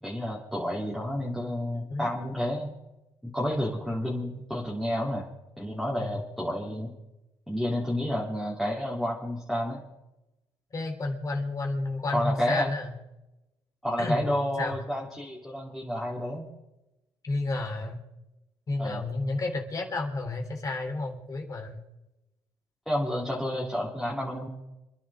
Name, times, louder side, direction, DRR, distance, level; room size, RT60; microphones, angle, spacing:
voice 1, 0.0-2.7 3.2-5.3 5.6-6.9 7.5-9.8 12.1-12.7 13.8-16.5 18.8-19.0 22.9-24.5, equal, 5° left, -6 dB, 3.4 m, -30 dB
voice 2, 10.7-13.0 14.0-14.3 14.6-14.8 17.2-18.0 18.7-21.8, left 2 dB, 40° left, 2 dB, 3.6 m, -31 dB
28.0 x 11.0 x 3.7 m, 0.95 s
cardioid pair, 85°, 9 cm